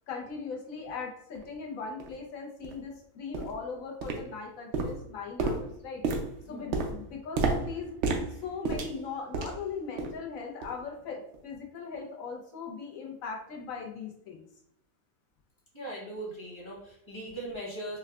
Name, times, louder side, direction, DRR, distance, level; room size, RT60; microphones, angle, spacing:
voice 1, 0.1-6.0 6.5-7.9 8.3-14.4, left 5 dB, 65° left, 0 dB, 1.1 m, -39 dB
sound 1, 1.3-1.4 2.0-2.1 2.6-2.8 3.3-3.6 4.0-4.5 4.7-9.7 10.0-10.3 10.6-10.8 11.3-11.4, right 4 dB, 70° right, 0.7 m, -32 dB
voice 2, 6.4-6.8 15.7-18.0, right 1 dB, 20° left, -4 dB, 0.9 m, -39 dB
4.5 x 2.2 x 2.3 m, 0.72 s
omnidirectional pair, 1.7 m